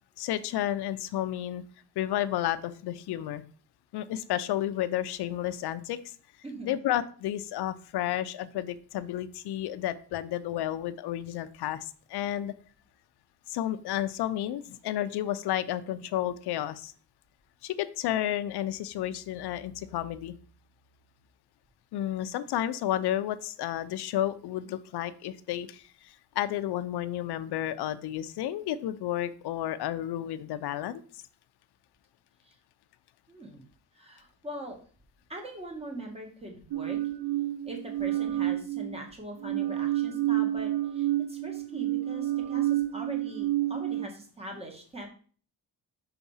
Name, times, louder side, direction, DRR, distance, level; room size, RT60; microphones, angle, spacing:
voice 1, 0.2-1.6 2.0-3.4 3.9-6.1 6.6-12.5 13.5-16.9 17.6-20.3 21.9-31.0, left 12 dB, 80° left, 12 dB, 0.6 m, -31 dB
voice 2, 6.4-6.8 32.4-32.5 33.3-33.6 33.9-34.8 35.3-37.0 37.6-45.1, right 1 dB, 15° right, 2 dB, 1.6 m, -42 dB
sound 1, 36.7-39.0 39.4-44.1, right 14 dB, 85° right, 0.6 m, -29 dB
5.9 x 3.7 x 5.5 m, 0.43 s
cardioid pair, 140°, 39 cm